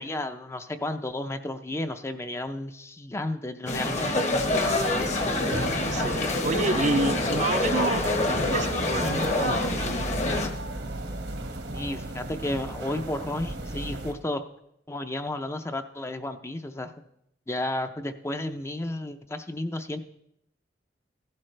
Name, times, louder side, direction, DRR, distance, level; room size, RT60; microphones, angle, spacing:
voice 1, 0.0-4.2 11.7-14.4 14.9-16.9 17.5-20.0, left 1 dB, 15° left, 8 dB, 0.5 m, -32 dB
sound 1, 3.7-10.5, left 2 dB, 40° left, 1.1 m, -26 dB
sound 2, 4.4-14.1, right 2 dB, 80° right, 1.4 m, -35 dB
voice 2, 5.9-10.0, right 3 dB, 40° right, 10 dB, 0.5 m, -29 dB
15.0 x 11.5 x 3.3 m, 0.77 s
head